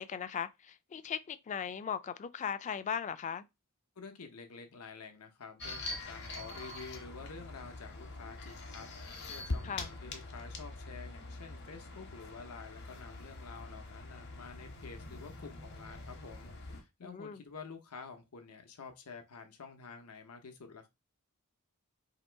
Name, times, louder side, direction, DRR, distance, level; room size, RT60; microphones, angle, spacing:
voice 1, 0.0-3.5 9.6-9.9 17.0-17.4, left 7 dB, 35° left, 0.3 m, -38 dB
voice 2, 4.0-20.9, left 4 dB, 80° left, 0.8 m, -49 dB
sound 1, 5.6-16.8, left 2 dB, 50° left, 0.9 m, -44 dB
2.9 x 2.9 x 4.4 m
head